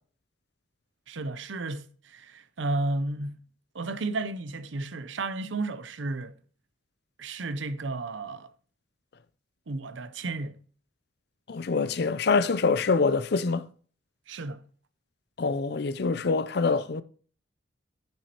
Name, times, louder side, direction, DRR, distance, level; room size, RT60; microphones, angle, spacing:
voice 1, 1.1-3.4 3.7-6.3 7.2-8.5 9.7-10.6 14.3-14.6, right 2 dB, 75° right, 0.7 m, -33 dB
voice 2, 11.5-13.7 15.4-17.0, left 4 dB, 55° left, 0.5 m, -25 dB
9.9 x 6.1 x 3.0 m
head